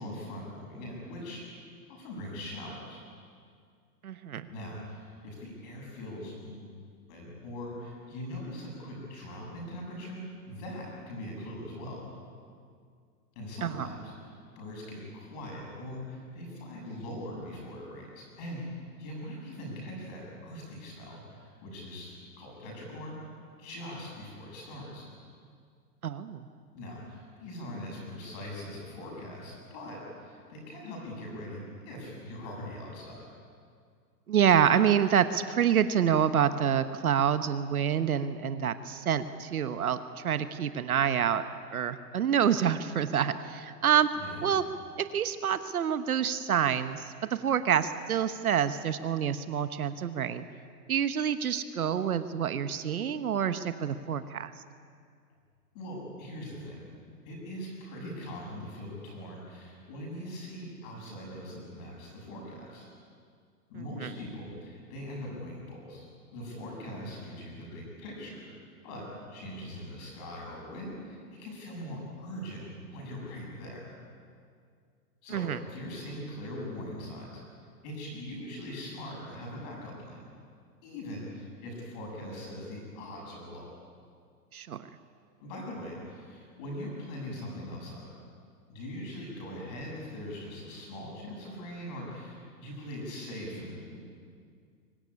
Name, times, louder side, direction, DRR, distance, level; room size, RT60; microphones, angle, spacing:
voice 1, 0.0-1.5 1.9-3.0 4.5-6.7 7.1-12.1 13.4-23.2 23.6-25.1 26.7-33.3 44.1-44.5 55.7-56.9 57.2-62.9 63.7-68.5 68.8-74.0 75.2-77.4 77.8-80.3 80.8-83.8 85.4-88.1 88.7-94.0, left 1 dB, 25° left, -1 dB, 7.2 m, -41 dB
voice 2, 4.0-4.5 13.6-13.9 26.0-26.5 34.3-40.0 40.2-41.4 41.7-44.1 44.4-44.6 45.0-50.4 50.9-54.5 64.0-64.1 75.3-75.6 84.5-84.9, right 8 dB, 60° right, 11 dB, 1.2 m, -27 dB
24.0 x 19.0 x 9.9 m, 2.2 s
hypercardioid pair, 170°, 49 cm